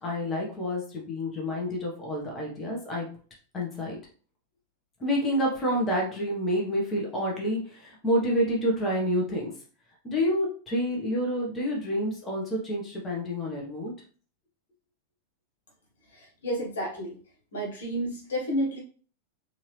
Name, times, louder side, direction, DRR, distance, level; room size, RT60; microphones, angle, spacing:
voice 1, 0.0-3.1 3.5-4.0 5.0-9.5 10.0-13.9, equal, 20° left, -2 dB, 1.3 m, -28 dB
voice 2, 16.1-17.2 17.5-18.8, equal, 65° left, -2 dB, 1.4 m, -31 dB
4.4 x 2.8 x 3.3 m, 0.42 s
figure-of-eight pair, 90°, 0 cm